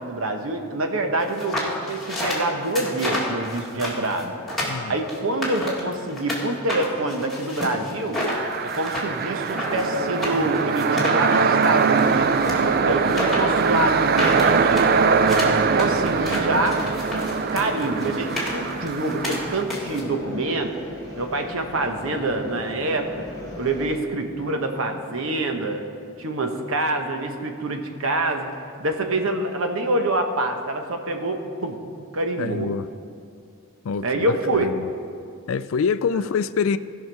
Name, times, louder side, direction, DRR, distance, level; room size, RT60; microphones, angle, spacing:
voice 1, 0.0-4.4 4.9-8.2 8.6-12.3 12.9-14.9 15.5-16.8 17.5-20.8 21.2-23.2 23.6-25.8 26.2-28.5 28.8-31.8 32.1-32.7 34.0-34.7 36.1-36.3, right 2 dB, 75° right, 5 dB, 1.0 m, -26 dB
sound 1, 1.3-6.4 6.7-20.0, left 1 dB, ahead, 1.7 m, -30 dB
sound 2, 8.3-19.6, right 5 dB, 45° right, 0.3 m, -22 dB
sound 3, 12.1-24.0, left 1 dB, 15° left, 1.3 m, -38 dB
voice 2, 32.4-32.9 33.8-34.3 34.5-34.7 35.5-36.8, left 6 dB, 70° left, 14 dB, 0.4 m, -25 dB
16.5 x 5.8 x 4.6 m, 2.4 s
head